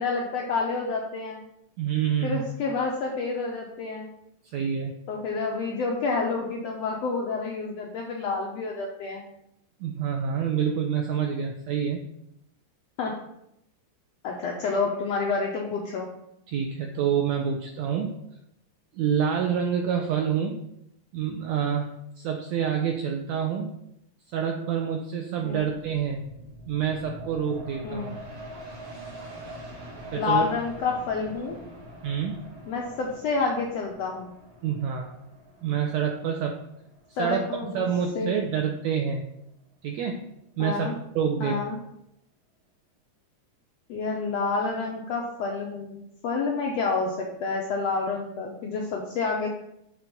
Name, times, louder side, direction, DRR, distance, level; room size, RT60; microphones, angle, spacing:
voice 1, 0.0-1.4 2.2-4.1 5.1-9.2 13.0-13.2 14.2-16.1 25.4-25.7 27.8-28.1 30.1-31.6 32.7-34.4 37.2-37.9 38.1-38.4 40.6-40.9 41.4-41.8 43.9-49.5, left 4 dB, 80° left, 0 dB, 1.5 m, -29 dB
voice 2, 1.8-2.5 4.5-4.9 9.8-12.0 16.5-18.2 18.9-20.7 21.1-21.9 22.2-23.8 24.3-26.2 26.7-28.1 30.1-30.4 32.0-32.5 34.6-35.1 35.6-36.6 37.2-39.2 39.8-40.3 40.6-40.9 41.1-41.6, right 8 dB, 90° right, 2 dB, 1.5 m, -27 dB
sound 1, 25.9-38.8 39.2-39.3, right 1 dB, 45° right, 2.1 m, -44 dB
7.4 x 3.5 x 5.2 m, 0.80 s
omnidirectional pair, 3.7 m